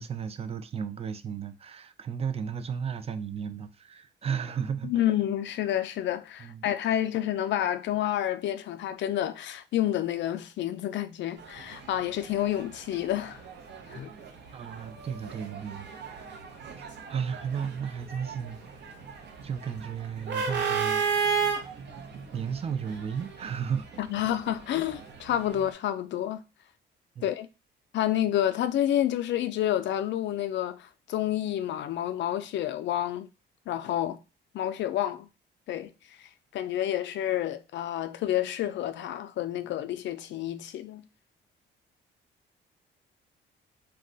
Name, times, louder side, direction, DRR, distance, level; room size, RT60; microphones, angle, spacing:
voice 1, 0.0-5.0 6.4-6.7 14.5-15.9 16.3-16.4 16.8-18.9 19.4-21.0 22.3-23.9 24.1-24.3 27.2-27.3, right 7 dB, 30° right, 0.3 m, -34 dB
voice 2, 4.8-13.4 13.9-14.1 24.0-26.4 27.2-27.5 27.9-33.3 33.7-34.2 34.5-35.3 35.7-35.9 36.5-41.1, left 12 dB, 65° left, 0.4 m, -29 dB
sound 1, 11.4-25.7, right 6 dB, 60° right, 0.7 m, -35 dB
2.3 x 2.2 x 3.8 m
cardioid pair, 90°, 20 cm